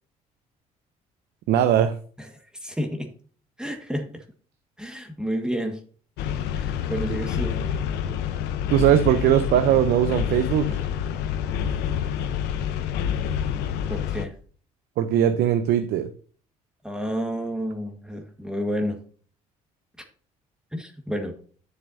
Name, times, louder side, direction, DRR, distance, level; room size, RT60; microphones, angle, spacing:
voice 1, 1.5-1.9 8.7-10.8 15.0-16.1, right 10 dB, 70° right, 11 dB, 0.7 m, -20 dB
voice 2, 2.6-3.1 3.6-4.2 4.8-5.8 6.5-7.6 13.9-14.3 16.8-19.0 20.7-21.3, equal, 5° right, 4 dB, 1.6 m, -30 dB
sound 1, 6.2-14.2, left 8 dB, 75° left, 0.9 m, -27 dB
10.5 x 6.8 x 2.7 m, 0.43 s
hypercardioid pair, 65°, 17 cm